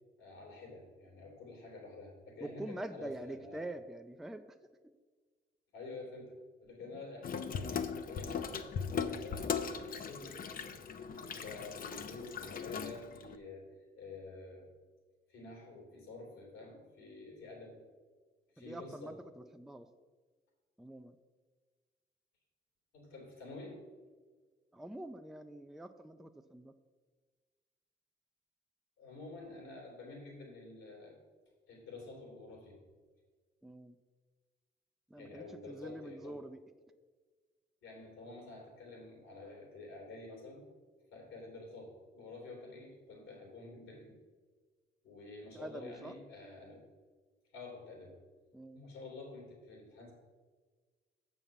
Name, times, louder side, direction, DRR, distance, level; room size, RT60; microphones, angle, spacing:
voice 1, 0.2-3.6 5.7-10.7 11.1-14.7 15.3-17.8 18.5-19.1 22.9-23.8 29.0-31.2 31.7-32.8 35.2-36.4 37.8-40.7 41.1-44.2 45.0-46.8 47.5-48.2 48.7-50.1, left 3 dB, 85° left, -1 dB, 3.1 m, -49 dB
voice 2, 2.4-4.6 18.6-19.9 20.8-21.2 24.7-26.8 33.6-34.0 35.1-36.6 45.5-46.1 48.5-48.9, right 1 dB, ahead, 7 dB, 0.4 m, -45 dB
Water tap faucet / Sink (filling or washing), 7.2-13.4, left 6 dB, 45° left, 0.6 m, -39 dB
7.2 x 5.3 x 7.2 m, 1.5 s
cardioid pair, 90°, 20 cm